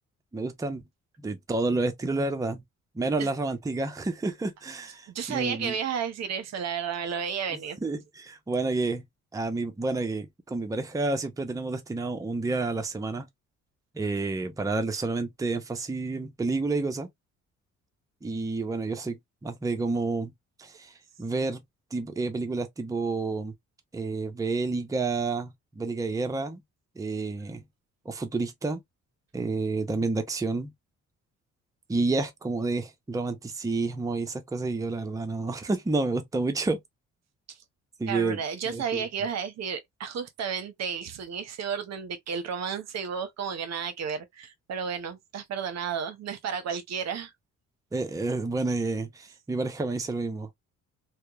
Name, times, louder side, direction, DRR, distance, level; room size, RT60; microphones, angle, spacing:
voice 1, 0.3-0.8 1.2-2.6 2.9-5.8 7.8-9.0 9.3-13.3 13.9-17.1 18.2-20.3 20.6-21.6 21.9-23.5 23.9-26.6 27.0-27.6 28.1-28.8 29.3-30.7 31.9-36.8 38.0-38.4 38.7-39.0 47.9-50.5, right 3 dB, 10° right, 0.6 m, -29 dB
voice 2, 5.1-7.8 37.5-37.6 38.1-47.3, right 7 dB, 60° right, 0.7 m, -32 dB
2.8 x 2.1 x 2.3 m
cardioid pair, 90°, 30 cm